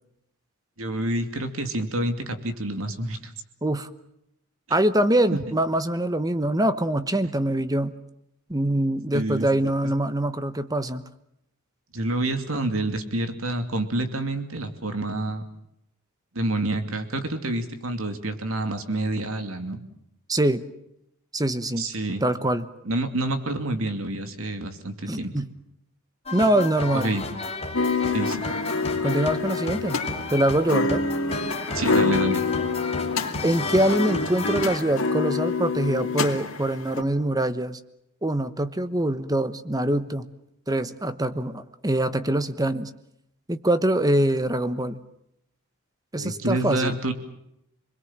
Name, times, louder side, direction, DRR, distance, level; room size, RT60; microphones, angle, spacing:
voice 1, 0.8-3.3 9.1-9.7 11.9-15.4 16.3-19.8 21.8-22.2 22.8-25.3 26.9-27.2 28.1-28.4 31.7-32.4 46.2-47.1, right 1 dB, 70° right, 7 dB, 2.7 m, -28 dB
voice 2, 4.7-8.0 8.5-11.0 20.3-20.6 21.3-21.9 22.2-22.6 25.1-25.5 26.3-27.1 29.0-30.0 30.3-31.0 33.4-37.8 38.2-40.3 40.7-42.9 43.5-45.0 46.1-47.0, right 1 dB, 15° right, 12 dB, 1.1 m, -24 dB
sound 1, 26.3-34.8, left 3 dB, 30° left, 2.9 m, -33 dB
sound 2, 27.7-37.0, left 4 dB, 65° left, 2.6 m, -27 dB
27.5 x 21.5 x 7.5 m, 0.78 s
head